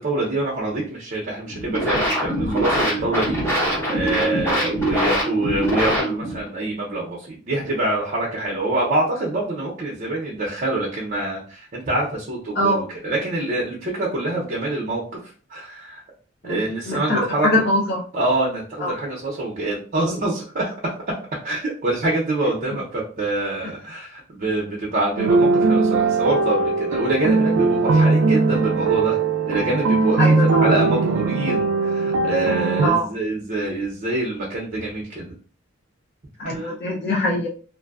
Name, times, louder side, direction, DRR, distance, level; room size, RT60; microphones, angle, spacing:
voice 1, 0.0-16.0 16.4-17.6 18.1-21.2 21.4-29.2 29.5-30.3 30.6-35.3 36.4-36.7, right 2 dB, 45° right, -3 dB, 0.6 m, -25 dB
sound 1, 1.5-6.5, right 1 dB, 15° left, 0.9 m, -23 dB
voice 2, 16.4-18.0 18.8-18.9 30.2-30.7 32.8-33.1 36.4-37.5, equal, 55° left, -2 dB, 0.6 m, -22 dB
sound 2, 25.2-32.9, right 3 dB, 80° right, 0.3 m, -19 dB
2.5 x 2.2 x 2.3 m, 0.41 s
head